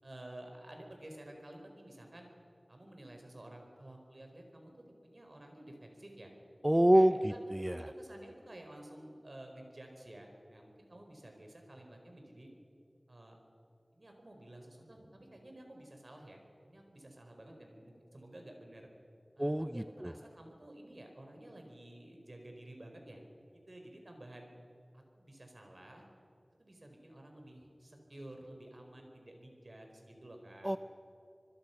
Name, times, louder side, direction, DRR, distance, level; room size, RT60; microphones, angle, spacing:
voice 1, 0.0-2.3 2.7-4.7 5.0-6.3 6.9-7.4 7.8-12.5 13.1-13.4 13.9-18.9 19.4-23.2 23.7-24.5 24.9-26.0 26.6-30.7, right 1 dB, 55° right, 3 dB, 4.6 m, -52 dB
voice 2, 6.6-7.9 19.4-20.1 30.6-30.8, right 1 dB, 15° right, 11 dB, 0.6 m, -27 dB
26.5 x 21.0 x 5.9 m, 2.7 s
wide cardioid pair, 55°, 0 cm